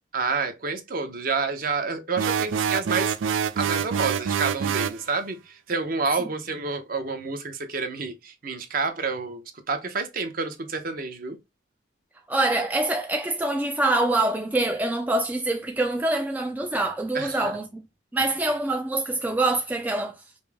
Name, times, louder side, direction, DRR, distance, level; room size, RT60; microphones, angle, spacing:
voice 1, 0.1-3.1 3.6-11.4 17.1-17.5, right 4 dB, 45° right, 0.7 m, -29 dB
sound 1, 2.2-5.0, right 7 dB, 90° right, 0.4 m, -26 dB
voice 2, 12.3-17.8 18.1-20.2, right 2 dB, 10° right, 0.3 m, -25 dB
5.3 x 2.0 x 3.4 m
head